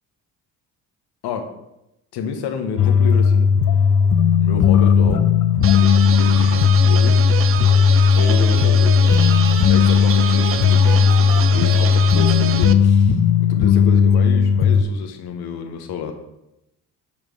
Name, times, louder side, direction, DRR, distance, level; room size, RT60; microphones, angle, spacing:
voice 1, 2.1-3.5 4.4-5.2 5.7-7.2 8.1-9.2 9.6-16.1, left 6 dB, 80° left, 6 dB, 1.1 m, -29 dB
sound 1, 2.8-14.8, left 6 dB, 55° left, 0.6 m, -15 dB
sound 2, 5.6-12.7, right 8 dB, 35° right, 0.5 m, -27 dB
Telephone, 8.0-8.7 9.0-12.7, right 5 dB, 55° right, 1.5 m, -34 dB
7.3 x 3.3 x 6.2 m, 0.88 s
cardioid pair, 90°, 38 cm